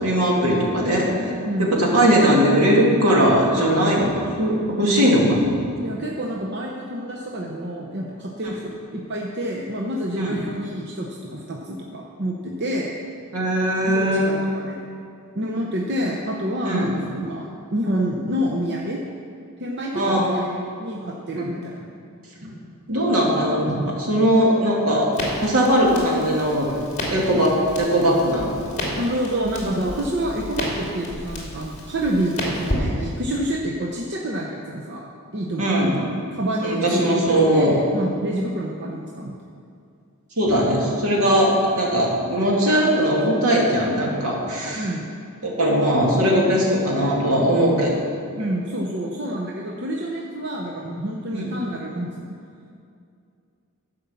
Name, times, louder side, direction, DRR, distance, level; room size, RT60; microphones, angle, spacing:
voice 1, 0.0-1.3 1.8-5.5 8.4-8.6 10.2-10.4 13.3-14.4 16.6-17.0 19.9-20.4 21.4-21.5 22.4-22.5 22.9-25.1 25.4-26.7 27.1-28.5 35.6-36.0 36.6-37.7 40.4-44.9 45.4-48.0 51.3-51.5, equal, 70° right, -3 dB, 2.2 m, -19 dB
voice 2, 1.4-1.7 5.8-12.9 13.8-14.8 15.3-19.0 19.6-21.9 29.0-35.0 35.3-35.7 36.3-39.4 44.8-45.1 48.4-52.4, right 1 dB, 50° right, -1 dB, 0.8 m, -28 dB
Crackle, 25.1-33.4, left 1 dB, 30° left, 2.3 m, -32 dB
11.5 x 5.4 x 7.0 m, 2.4 s
head